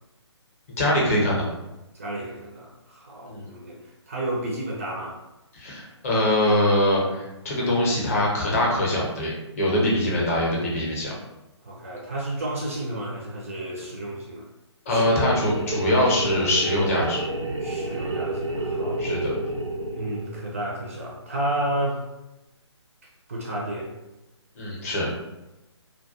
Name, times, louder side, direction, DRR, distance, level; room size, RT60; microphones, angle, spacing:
voice 1, 0.8-1.5 3.3-3.5 5.5-11.1 14.9-17.2 19.0-19.3 24.6-25.1, left 1 dB, 30° left, -4 dB, 0.6 m, -23 dB
voice 2, 1.9-5.2 11.6-14.5 14.9-15.1 17.6-19.1 19.9-22.1 23.3-23.9, right 1 dB, 30° right, -3 dB, 0.4 m, -31 dB
sound 1, 14.9-20.6, right 2 dB, 90° right, 0.5 m, -30 dB
2.2 x 2.2 x 2.6 m, 0.99 s
figure-of-eight pair, 140°, 15 cm